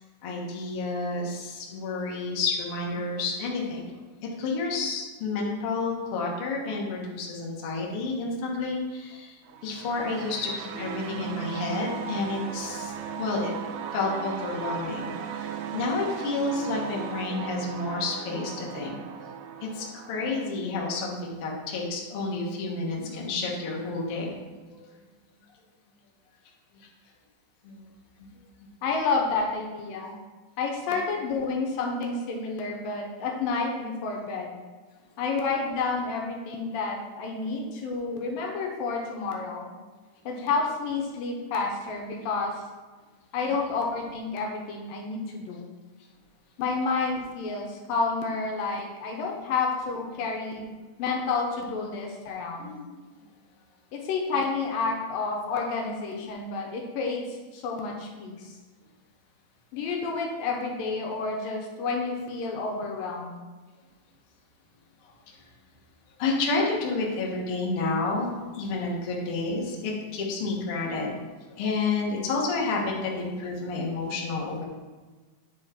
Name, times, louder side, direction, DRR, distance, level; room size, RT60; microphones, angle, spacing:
voice 1, 0.2-3.9 4.4-9.4 9.6-13.5 13.9-15.1 15.4-19.0 19.6-24.3 24.7-24.8 27.6-27.7 52.6-52.9 66.2-71.1 71.6-74.6, left 3 dB, 60° left, -2 dB, 1.5 m, -30 dB
sound 1, 9.5-20.5, right 7 dB, 90° right, 2.5 m, -37 dB
voice 2, 28.8-30.1 30.6-34.6 35.2-39.7 40.3-42.6 43.3-45.7 46.6-50.7 51.0-52.7 53.9-58.6 59.7-63.4, left 4 dB, 75° left, 0 dB, 2.6 m, -30 dB
8.9 x 4.9 x 4.4 m, 1.3 s
omnidirectional pair, 4.2 m